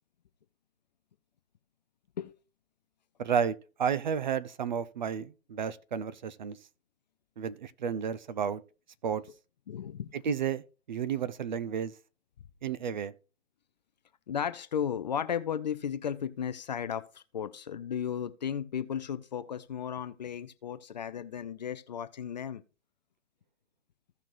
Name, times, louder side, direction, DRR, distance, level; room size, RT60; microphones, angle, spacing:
voice 1, 3.2-6.6 7.4-8.6 9.0-9.2 10.2-10.6 10.9-11.9 12.6-13.1, right 7 dB, 35° right, 0.5 m, -32 dB
voice 2, 9.7-10.1 14.3-22.6, left 8 dB, 35° left, 0.5 m, -35 dB
15.5 x 5.9 x 2.6 m
figure-of-eight pair, 135°, 39 cm